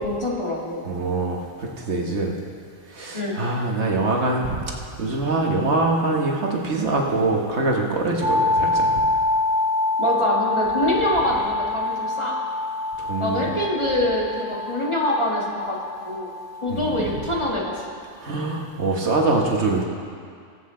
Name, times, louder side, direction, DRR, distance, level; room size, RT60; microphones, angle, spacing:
voice 1, 0.0-0.8 3.1-3.4 10.0-12.4 13.2-15.8 16.0-16.3 16.6-17.8, left 1 dB, 25° left, -4 dB, 1.6 m, -24 dB
voice 2, 0.8-2.4 2.9-8.9 13.0-13.4 16.7-17.0 18.2-19.9, right 2 dB, 70° right, 0 dB, 1.5 m, -24 dB
sound 1, 8.2-18.0, left 2 dB, 85° right, 2.6 m, -26 dB
20.5 x 7.7 x 3.8 m, 2.2 s
omnidirectional pair, 1.2 m